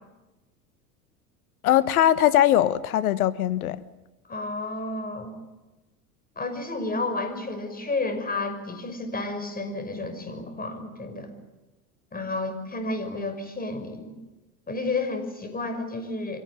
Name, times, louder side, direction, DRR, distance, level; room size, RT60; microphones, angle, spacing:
voice 1, 1.6-3.8, left 12 dB, 75° left, 1.3 m, -21 dB
voice 2, 4.3-5.4 6.4-11.3 12.1-14.1 14.7-16.4, left 2 dB, 20° left, 6.0 m, -31 dB
25.0 x 18.0 x 9.7 m
hypercardioid pair, 80°, 43 cm